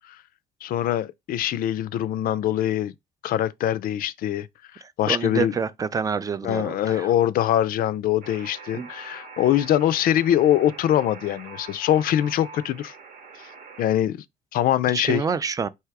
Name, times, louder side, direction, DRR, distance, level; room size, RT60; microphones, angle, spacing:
voice 1, 0.6-2.9 3.2-4.5 4.7-5.6 6.4-12.9 13.8-14.2 14.5-15.2, left 11 dB, 60° left, 0.4 m, -23 dB
voice 2, 4.8-7.1 8.7-8.9 14.9-15.7, right 6 dB, 20° right, 0.3 m, -28 dB
Alarm, 8.2-13.9, right 5 dB, 50° right, 0.9 m, -43 dB
3.4 x 2.8 x 4.6 m
cardioid pair, 110°, 17 cm